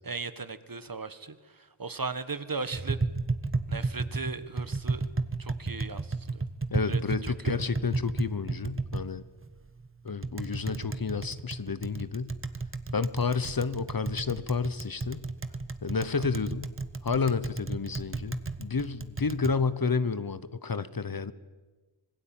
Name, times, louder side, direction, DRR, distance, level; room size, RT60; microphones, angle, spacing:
voice 1, 0.0-3.1 3.7-5.1 5.4-6.4 6.9-7.7 16.0-16.2, right 4 dB, 45° right, 13 dB, 1.5 m, -38 dB
Tap, 2.7-19.5, right 3 dB, 25° right, 1.3 m, -34 dB
voice 2, 6.7-9.2 10.0-12.3 12.9-15.2 15.8-16.7 17.0-21.3, left 5 dB, 50° left, 15 dB, 1.1 m, -30 dB
26.0 x 19.5 x 9.1 m, 1.3 s
wide cardioid pair, 60°, 46 cm